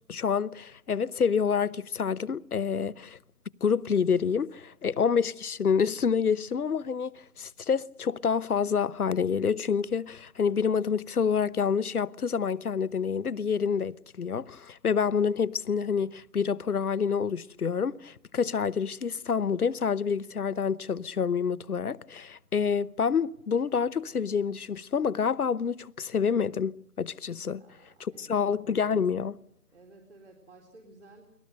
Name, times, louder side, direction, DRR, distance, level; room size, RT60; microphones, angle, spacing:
voice 1, 0.1-3.2 3.6-27.6 28.2-29.4, left 6 dB, 75° left, 1.0 m, -28 dB
voice 2, 27.6-28.4 29.7-31.3, right 2 dB, 50° right, 4.0 m, -54 dB
29.5 x 21.0 x 6.7 m
hypercardioid pair, 175°, 45 cm